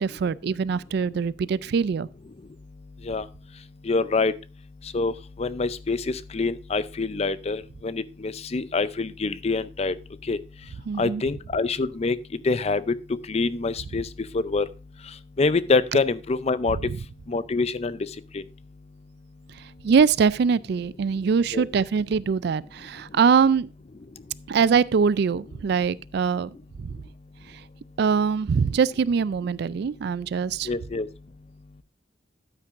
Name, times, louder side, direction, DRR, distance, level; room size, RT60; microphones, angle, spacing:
voice 1, 0.0-2.1 10.9-11.2 19.8-23.7 24.5-26.5 26.8-26.9 28.0-30.7, right 6 dB, 60° right, 0.3 m, -23 dB
voice 2, 3.8-4.3 4.9-5.1 5.4-10.0 10.3-10.4 11.0-12.2 12.4-12.9 13.3-14.1 14.3-14.7 15.4-16.8 17.3-18.0 18.3-18.4 21.5-21.7 30.7-31.1, left 3 dB, 35° left, 0.5 m, -25 dB
13.0 x 8.8 x 2.5 m
head